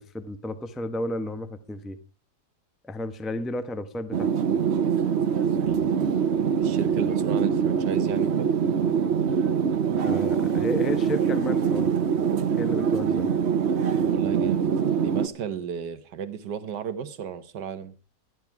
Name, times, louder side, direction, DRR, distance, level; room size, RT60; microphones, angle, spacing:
voice 1, 0.0-2.0 2.8-4.3 10.0-11.9 12.6-13.3, left 1 dB, ahead, 0.6 m, -32 dB
sound 1, 4.1-15.3, right 7 dB, 50° right, 1.0 m, -24 dB
voice 2, 5.6-8.6 14.0-14.7 15.0-17.9, right 8 dB, 90° right, 1.7 m, -34 dB
13.0 x 11.0 x 4.6 m
omnidirectional pair, 1.7 m